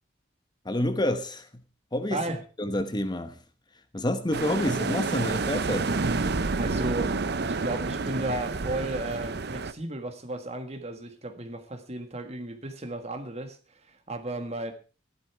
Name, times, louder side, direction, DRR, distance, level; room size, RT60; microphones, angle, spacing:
voice 1, 0.6-1.6 1.9-2.2 2.6-3.4 3.9-5.9, left 1 dB, 25° left, 1.0 m, -28 dB
voice 2, 2.1-2.4 6.3-14.7, right 2 dB, 35° right, 1.7 m, -34 dB
sound 1, 4.3-9.7, right 3 dB, 60° right, 0.7 m, -29 dB
13.5 x 11.5 x 4.6 m
head